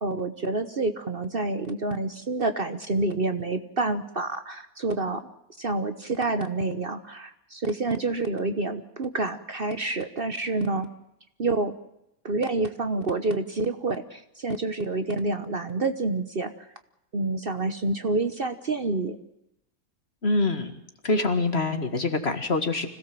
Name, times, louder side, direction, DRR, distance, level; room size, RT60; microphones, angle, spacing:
voice 1, 0.0-5.3 5.6-10.9 11.4-11.7 12.2-16.5 17.1-19.2, right 2 dB, 40° right, 9 dB, 1.2 m, -28 dB
voice 2, 20.2-20.7 21.0-22.9, left 3 dB, 45° left, 7 dB, 2.1 m, -25 dB
25.5 x 17.0 x 7.6 m, 0.84 s
omnidirectional pair, 1.6 m